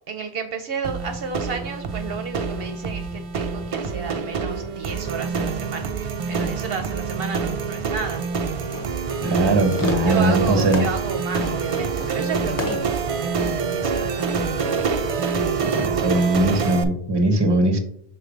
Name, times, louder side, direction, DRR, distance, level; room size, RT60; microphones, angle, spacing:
voice 1, 0.1-8.2 10.0-14.8, right 5 dB, 65° right, 6 dB, 0.8 m, -32 dB
sound 1, 0.8-16.8, right 5 dB, 50° right, 0.4 m, -26 dB
Fireworks, 8.6-13.7, equal, 20° left, 0.9 m, -32 dB
voice 2, 9.2-10.9 15.6-17.8, right 2 dB, 25° right, 6 dB, 0.8 m, -20 dB
6.0 x 3.2 x 5.0 m, 0.65 s
omnidirectional pair, 1.1 m